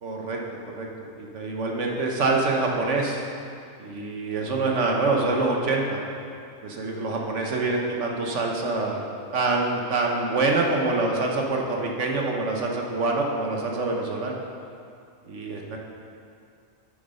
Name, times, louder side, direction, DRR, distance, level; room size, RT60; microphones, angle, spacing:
voice 1, 0.0-0.4 0.7-0.9 1.2-3.3 3.8-6.0 6.6-9.0 9.3-14.4 15.2-15.8, right 3 dB, 60° right, 0 dB, 1.3 m, -25 dB
9.3 x 7.3 x 5.3 m, 2.4 s
omnidirectional pair, 1.5 m